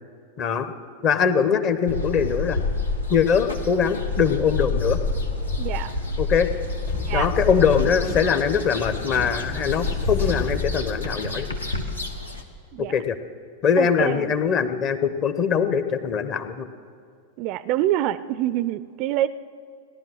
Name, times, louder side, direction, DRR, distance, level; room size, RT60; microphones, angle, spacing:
voice 1, 0.4-0.7 1.0-2.6 3.1-5.0 6.2-6.5 7.1-11.5 12.8-13.1 13.6-16.7, left 7 dB, 35° left, 11 dB, 0.9 m, -22 dB
sound 1, 1.9-12.4, left 3 dB, 80° left, 1.2 m, -28 dB
voice 2, 5.6-5.9 7.1-7.3 12.7-12.9 13.8-14.3 17.4-19.3, right 13 dB, 40° right, 17 dB, 0.4 m, -26 dB
sound 2, 6.9-11.3, left 4 dB, 60° left, 2.4 m, -33 dB
17.5 x 11.0 x 6.2 m, 2.2 s
figure-of-eight pair, 90°, 0 cm